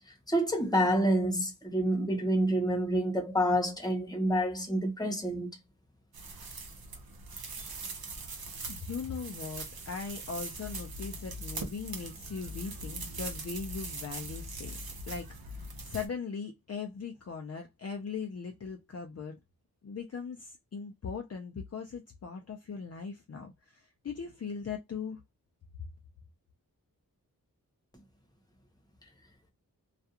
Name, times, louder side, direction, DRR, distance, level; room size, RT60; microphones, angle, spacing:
voice 1, 0.3-5.5, equal, 10° left, 0.9 m, -28 dB
sound 1, 6.1-16.1, right 2 dB, 80° right, 0.7 m, -41 dB
voice 2, 8.7-19.4 19.8-25.2, left 5 dB, 45° left, 0.5 m, -39 dB
2.4 x 2.3 x 2.7 m
wide cardioid pair, 100°, 36 cm